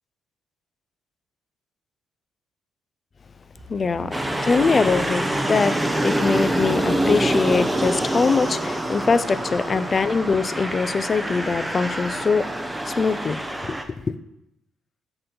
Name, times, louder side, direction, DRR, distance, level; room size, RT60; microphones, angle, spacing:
sound 1, 3.6-8.1, right 2 dB, 50° right, 1.1 m, -44 dB
voice 1, 3.7-5.8 6.0-12.5 12.9-13.4 13.7-13.8 14.1-14.2, left 4 dB, 35° left, 0.3 m, -22 dB
sound 2, 4.1-13.8, right 1 dB, 5° right, 0.6 m, -25 dB
7.8 x 3.8 x 4.0 m
cardioid pair, 90°, 0 cm